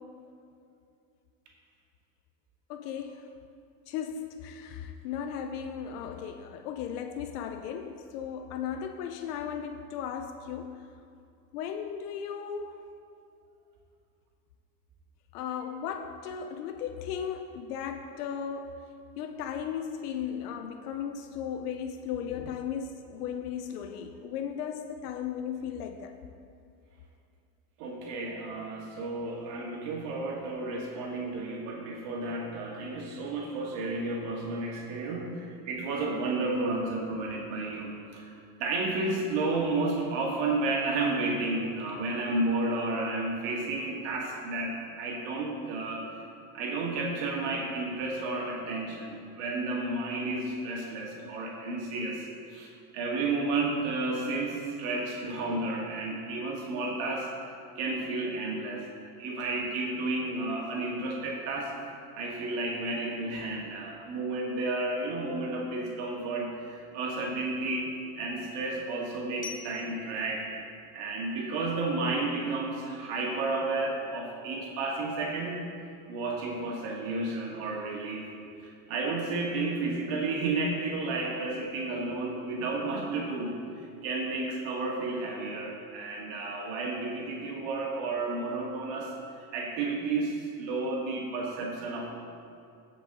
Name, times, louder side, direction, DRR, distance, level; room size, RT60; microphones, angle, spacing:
voice 1, 2.7-3.3 3.9-10.8 11.5-12.8 15.3-18.8 19.2-26.2, left 8 dB, 85° left, 7 dB, 0.7 m, -36 dB
voice 2, 27.8-46.1 46.5-57.3 57.8-58.8 59.2-61.7 62.1-70.5 70.9-75.7 76.1-78.3 78.6-89.1 89.5-92.1, right 2 dB, 70° right, -2 dB, 1.9 m, -32 dB
Glockenspiel, 69.4-72.3, left 5 dB, 15° left, 1.1 m, -48 dB
15.0 x 5.2 x 3.8 m, 2.5 s
supercardioid pair, 100°, 45 cm